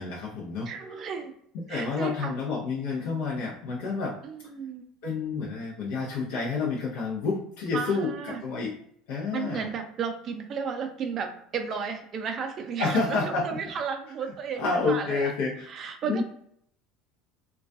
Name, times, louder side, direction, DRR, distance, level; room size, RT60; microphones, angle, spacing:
voice 1, 0.0-0.7 1.5-4.1 5.0-8.8 9.1-9.7 12.8-13.6 14.6-15.7 16.0-16.2, left 4 dB, 80° left, -5 dB, 0.6 m, -29 dB
voice 2, 0.7-1.3 1.7-2.3 4.2-4.8 7.7-8.4 9.3-15.3 15.7-16.2, right 6 dB, 40° right, 5 dB, 0.4 m, -34 dB
2.3 x 2.2 x 2.5 m, 0.68 s
cardioid pair, 135°, 0 cm